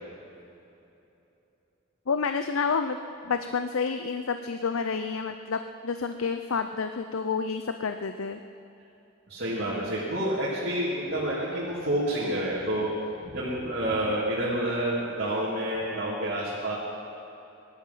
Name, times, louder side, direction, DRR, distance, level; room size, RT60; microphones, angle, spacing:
voice 1, 2.1-3.0 3.2-8.4, left 5 dB, 85° left, 8 dB, 0.6 m, -29 dB
voice 2, 9.3-12.9 13.2-16.8, right 1 dB, 55° right, -8 dB, 3.2 m, -29 dB
22.0 x 11.5 x 5.6 m, 2.9 s
head